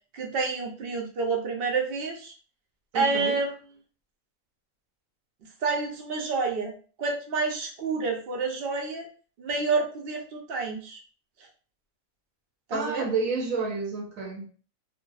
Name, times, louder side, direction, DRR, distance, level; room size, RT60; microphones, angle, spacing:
voice 1, 0.1-2.3 2.9-3.5 5.6-9.1 9.4-11.0 12.7-13.1, right 4 dB, 60° right, 0.7 m, -28 dB
voice 2, 2.9-3.4 12.7-14.5, right 4 dB, 80° right, 1.0 m, -30 dB
2.5 x 2.2 x 2.3 m
omnidirectional pair, 1.4 m